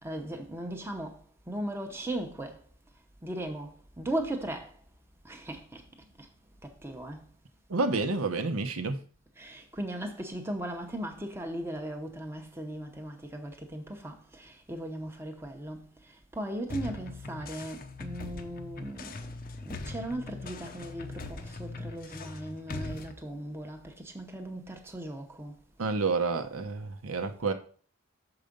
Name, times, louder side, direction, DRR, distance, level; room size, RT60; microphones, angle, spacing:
voice 1, 0.0-1.2 1.5-2.6 3.2-4.7 5.2-5.8 6.2-6.3 6.6-7.2 9.4-15.8 16.3-19.2 19.6-25.5, right 1 dB, 10° right, 0.8 m, -37 dB
voice 2, 7.7-9.0 25.8-27.5, right 3 dB, 75° right, 0.8 m, -29 dB
sound 1, 16.7-23.1, left 3 dB, 40° left, 0.6 m, -41 dB
6.7 x 4.9 x 5.2 m
head